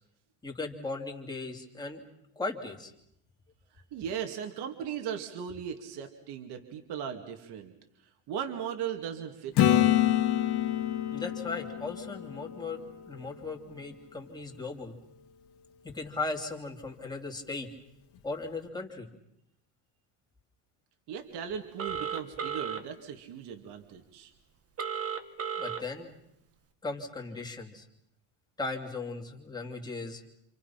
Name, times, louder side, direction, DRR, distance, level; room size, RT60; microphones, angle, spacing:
voice 1, 0.4-2.0 2.4-2.9 11.1-12.8 13.1-14.9 15.8-17.7 18.2-19.1 25.6-26.1 26.8-27.8 28.6-30.2, left 3 dB, 10° left, 0 dB, 2.9 m, -37 dB
voice 2, 3.7-7.7 8.3-10.0 21.1-24.3, right 8 dB, 55° right, 4 dB, 2.4 m, -38 dB
Acoustic guitar / Strum, 9.6-13.3 18.2-18.3, left 12 dB, 55° left, 2.1 m, -27 dB
Telephone, 21.8-22.8 24.8-25.8, right 7 dB, 30° right, 1.8 m, -34 dB
28.0 x 28.0 x 5.9 m, 0.79 s
cardioid pair, 160°, 46 cm